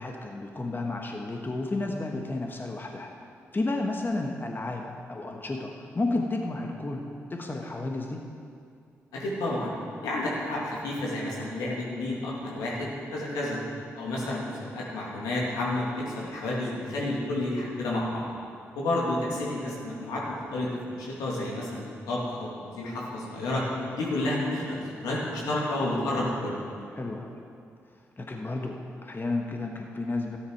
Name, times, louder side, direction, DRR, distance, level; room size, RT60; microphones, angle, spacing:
voice 1, 0.0-3.1 3.5-8.2 26.9-27.4 28.2-30.4, left 2 dB, 35° left, 2 dB, 1.3 m, -32 dB
voice 2, 9.1-9.7 10.0-13.6 13.9-18.2 18.7-26.6, left 1 dB, 85° left, -4 dB, 2.4 m, -30 dB
13.0 x 10.0 x 4.7 m, 2.4 s
supercardioid pair, 40°, 6 cm